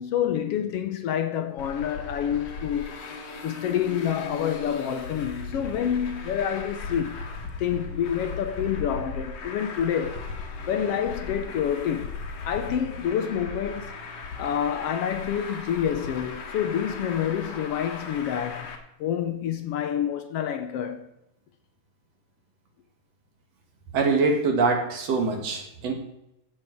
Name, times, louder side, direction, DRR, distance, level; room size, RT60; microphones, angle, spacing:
voice 1, 0.0-2.9 3.4-7.3 7.6-10.3 10.6-13.9 14.4-18.7 19.0-21.1, left 9 dB, 75° left, 1.4 m, -28 dB
Traffic noise roadway noise, 1.6-18.8, left 4 dB, 55° left, 2.4 m, -37 dB
voice 2, 23.9-25.9, right 4 dB, 55° right, 2.7 m, -24 dB
16.0 x 7.8 x 4.5 m
omnidirectional pair, 3.6 m